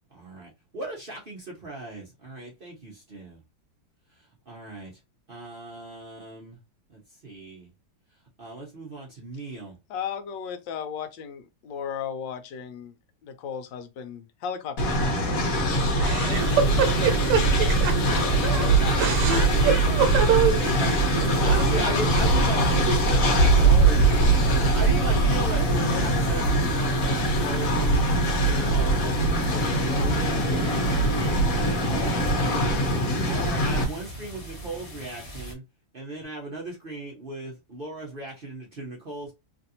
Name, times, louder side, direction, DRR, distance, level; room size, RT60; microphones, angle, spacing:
voice 1, 0.1-3.4 4.5-4.9 5.3-6.6 6.9-7.7 8.4-9.8 18.0-19.9 20.1-20.4 20.8-35.6 35.9-39.3, right 2 dB, 55° right, 0.6 m, -37 dB
voice 2, 9.9-12.9 13.2-14.9, left 7 dB, 75° left, 1.2 m, -35 dB
Train, 14.8-33.8, right 1 dB, 55° left, 1.1 m, -22 dB
voice 3, 16.0-18.0 19.0-20.6, right 7 dB, 75° right, 1.3 m, -24 dB
sound 1, 16.3-35.5, right 1 dB, 30° left, 0.7 m, -36 dB
3.2 x 2.6 x 2.7 m
omnidirectional pair, 2.1 m